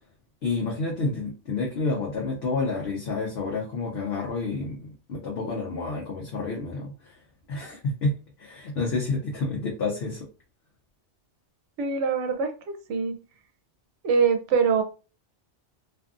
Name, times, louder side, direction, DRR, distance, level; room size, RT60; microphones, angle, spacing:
voice 1, 0.4-7.2 7.5-10.3, left 3 dB, 65° left, -1 dB, 0.9 m, -29 dB
voice 2, 11.8-13.2 14.0-14.8, right 6 dB, 80° right, 6 dB, 0.9 m, -24 dB
2.6 x 2.5 x 2.3 m, 0.34 s
omnidirectional pair, 1.2 m